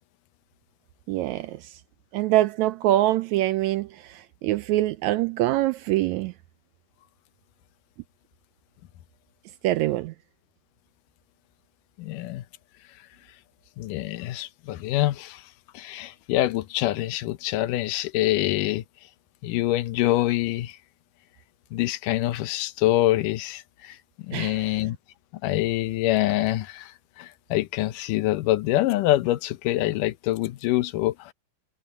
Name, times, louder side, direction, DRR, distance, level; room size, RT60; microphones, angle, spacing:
voice 1, 1.1-1.8 2.1-6.3 9.6-10.1 24.3-24.8, right 15 dB, 80° right, 1.7 m, -24 dB
voice 2, 12.0-12.4 13.8-15.4 15.7-18.8 19.4-20.8 21.7-24.0 24.3-25.0 25.4-31.3, left 15 dB, 85° left, 2.4 m, -25 dB
omnidirectional pair, 3.7 m